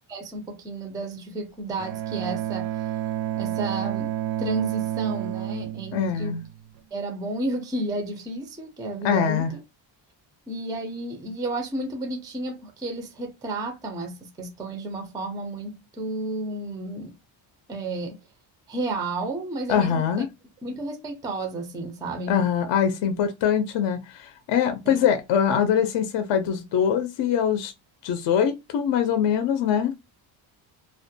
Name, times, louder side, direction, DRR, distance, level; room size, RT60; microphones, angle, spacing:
voice 1, 0.1-2.7 3.4-4.1 4.4-6.4 6.9-9.4 10.5-17.1 17.7-18.2 18.7-20.2 20.6-22.4 24.9-25.1, right 2 dB, 10° right, 0.3 m, -32 dB
Bowed string instrument, 1.8-6.8, right 12 dB, 75° right, 0.6 m, -30 dB
voice 2, 5.9-6.4 9.0-9.5 19.7-20.3 22.3-27.7 28.0-29.9, left 8 dB, 60° left, 0.5 m, -23 dB
2.3 x 2.1 x 2.6 m
cardioid pair, 145°, 48 cm